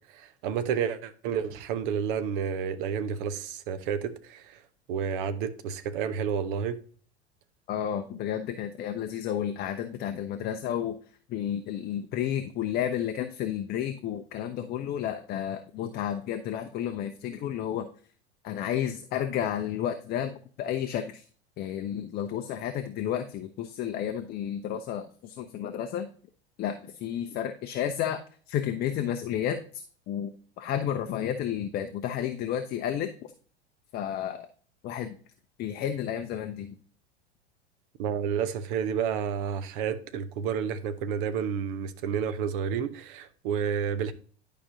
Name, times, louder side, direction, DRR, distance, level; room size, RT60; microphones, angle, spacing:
voice 1, 0.1-4.6 4.9-6.8 38.0-44.1, right 7 dB, 50° right, 0.9 m, -30 dB
voice 2, 7.7-11.0 11.3-17.9 18.4-21.2 21.6-26.1 26.6-30.3 30.6-33.3 33.9-34.5 34.8-35.2 35.6-36.7, left 10 dB, 30° left, 0.6 m, -31 dB
11.0 x 5.0 x 2.7 m
figure-of-eight pair, 85°, 33 cm